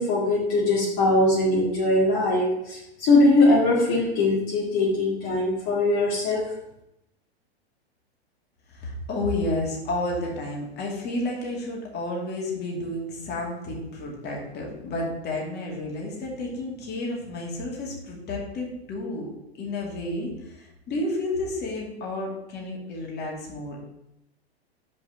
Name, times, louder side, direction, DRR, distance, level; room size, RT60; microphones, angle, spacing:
voice 1, 0.0-6.5, left 2 dB, 45° left, -5 dB, 2.0 m, -21 dB
voice 2, 8.7-19.3 19.5-23.9, left 2 dB, 30° left, -2 dB, 2.5 m, -31 dB
5.9 x 5.3 x 6.4 m, 0.85 s
hypercardioid pair, 115°, 32 cm